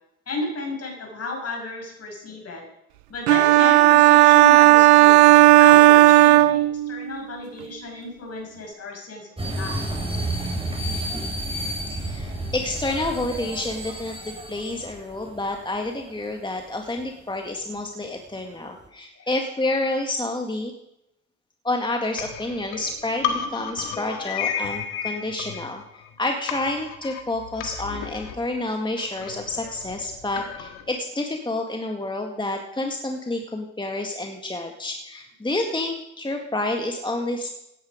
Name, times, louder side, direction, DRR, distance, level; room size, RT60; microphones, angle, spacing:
voice 1, 0.3-2.6 3.1-5.2 5.6-9.8 19.2-19.4 24.4-24.7, left 2 dB, 50° left, 1 dB, 6.3 m, -33 dB
sound 1, 3.3-7.2, right 17 dB, 85° right, 0.6 m, -13 dB
sound 2, 9.4-16.2 16.6-16.7 17.0-17.1 17.8-17.9 18.8-18.9, right 1 dB, 15° right, 4.1 m, -31 dB
voice 2, 11.9-20.7 21.6-37.5, left 2 dB, 15° left, 3 dB, 1.9 m, -29 dB
sound 3, 22.2-26.1 26.5-30.9, left 8 dB, 80° left, 1.7 m, -33 dB
17.0 x 10.5 x 5.1 m, 0.83 s
hypercardioid pair, 60°, 33 cm